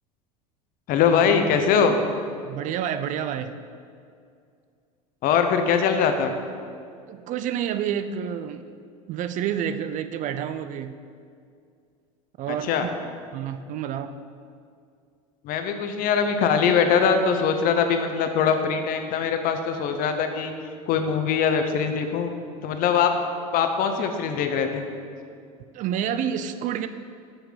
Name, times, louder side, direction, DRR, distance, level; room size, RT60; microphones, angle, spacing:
voice 1, 0.9-2.0 5.2-6.3 12.5-12.9 15.4-20.5 20.9-22.3 22.6-23.1 23.5-24.9, left 6 dB, 50° left, 7 dB, 0.8 m, -22 dB
voice 2, 2.4-3.5 7.1-8.7 9.1-11.0 12.4-12.9 13.3-14.2 25.7-26.9, right 9 dB, 45° right, 11 dB, 0.4 m, -29 dB
7.1 x 6.6 x 3.9 m, 2.3 s
hypercardioid pair, 95°, 19 cm